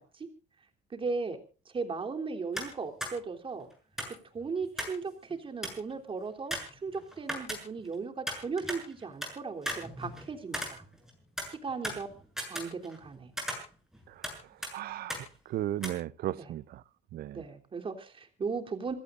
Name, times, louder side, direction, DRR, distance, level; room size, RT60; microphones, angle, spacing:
voice 1, 0.9-1.4 1.7-3.7 4.1-10.8 11.5-12.1 12.5-13.3 16.4-16.5 17.3-18.9, right 4 dB, 30° right, 3.4 m, -37 dB
sound 1, 2.5-2.7 3.0-3.1 4.0-5.0 5.3-5.4 5.6-5.9 6.5-7.9 8.3-9.3 9.6-11.1 11.4-13.1 13.4-14.4 14.6-14.7 15.1-15.3 15.8-15.9, equal, 5° right, 7.3 m, -37 dB
voice 2, 14.7-15.2 15.5-16.8 17.1-17.4, right 13 dB, 65° right, 0.8 m, -35 dB
27.5 x 17.0 x 2.6 m
cardioid pair, 110°, 17 cm